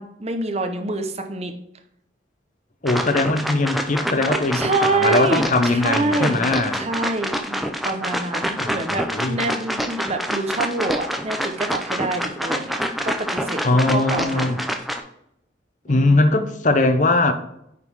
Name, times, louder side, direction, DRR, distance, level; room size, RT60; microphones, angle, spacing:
voice 1, 0.0-1.5 4.5-6.5 6.8-12.8 13.0-14.6 15.9-16.2, right 2 dB, 35° right, 0.8 m, -26 dB
voice 2, 2.8-6.7 8.6-9.4 13.6-14.6 15.9-17.3, left 2 dB, 45° left, 0.8 m, -20 dB
sound 1, 2.9-15.0, equal, ahead, 0.6 m, -27 dB
9.4 x 4.0 x 4.7 m
head